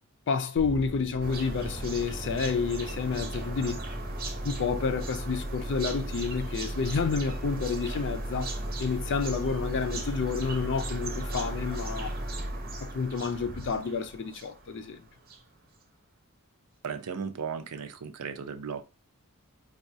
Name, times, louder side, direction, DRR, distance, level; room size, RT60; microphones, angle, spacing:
voice 1, 0.3-3.8 4.4-8.5 8.8-12.2 12.8-15.0, left 5 dB, 55° left, 0.5 m, -30 dB
sound 1, 0.6-14.0, equal, 15° right, 0.4 m, -37 dB
sound 2, 1.2-15.5, right 3 dB, 40° right, 0.7 m, -41 dB
voice 2, 16.8-18.8, right 6 dB, 80° right, 0.5 m, -36 dB
4.8 x 2.3 x 2.6 m
head